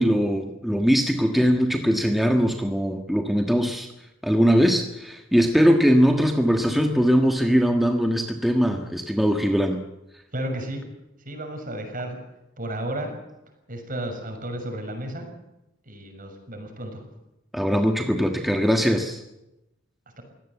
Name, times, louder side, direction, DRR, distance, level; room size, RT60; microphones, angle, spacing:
voice 1, 0.0-3.9 4.2-9.8 17.5-19.2, equal, ahead, 4 dB, 1.5 m, -21 dB
voice 2, 10.3-10.8 11.2-12.2 12.6-13.1 13.7-15.3 15.9-17.0 20.2-20.3, right 1 dB, 45° right, 4 dB, 6.4 m, -32 dB
23.5 x 17.0 x 8.2 m, 0.92 s
head